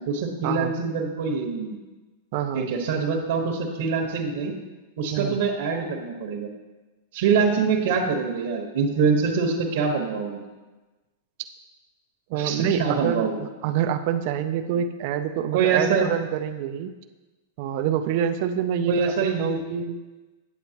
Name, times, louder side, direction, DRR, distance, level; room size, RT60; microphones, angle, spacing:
voice 1, 0.0-1.8 2.5-4.5 5.0-6.5 7.1-10.4 12.3-13.4 15.5-16.1 18.9-19.6, right 5 dB, 70° right, 0 dB, 1.4 m, -24 dB
voice 2, 2.3-2.7 5.1-5.4 12.3-16.9 17.6-18.9 19.4-20.1, right 9 dB, 50° right, 6 dB, 0.5 m, -26 dB
9.5 x 8.1 x 3.0 m, 1.2 s
supercardioid pair, 145°, 0 cm